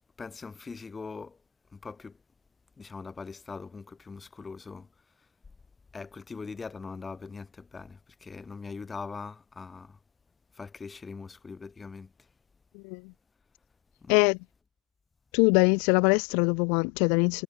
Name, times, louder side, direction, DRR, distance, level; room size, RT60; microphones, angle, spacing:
voice 1, 0.2-1.4 1.7-2.2 2.8-4.9 5.2-5.3 5.9-10.0 10.5-12.3 14.0-14.2, left 4 dB, 20° left, 6.5 m, -41 dB
voice 2, 15.3-17.4, left 37 dB, 90° left, 1.2 m, -23 dB
cardioid pair, 120°, 0 cm